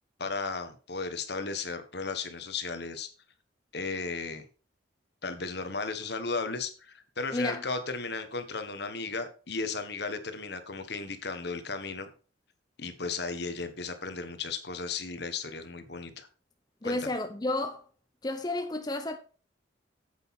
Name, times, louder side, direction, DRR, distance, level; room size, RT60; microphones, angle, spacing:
voice 1, 0.2-3.1 3.7-4.4 5.2-12.1 12.8-16.3 16.8-17.0, left 4 dB, 60° left, 1.4 m, -35 dB
voice 2, 7.3-7.6 16.8-17.8 18.2-19.2, left 2 dB, 20° left, 0.7 m, -31 dB
8.4 x 8.2 x 4.2 m
head